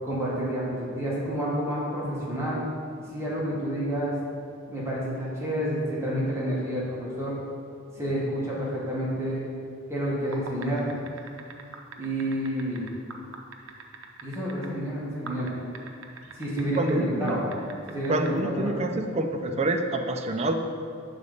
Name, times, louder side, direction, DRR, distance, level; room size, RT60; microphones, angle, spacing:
voice 1, 0.0-2.6 3.1-4.2 4.7-7.4 7.9-9.5 9.9-11.0 12.0-12.9 14.2-15.5 16.3-17.4 17.9-18.9, equal, 15° right, -7 dB, 1.5 m, -29 dB
sound 1, 10.2-14.7 15.3-16.9 17.3-18.3, right 5 dB, 75° right, 0.6 m, -41 dB
voice 2, 16.8-17.4 18.1-20.5, right 2 dB, 30° right, 4 dB, 0.5 m, -27 dB
6.8 x 4.0 x 5.2 m, 2.3 s
head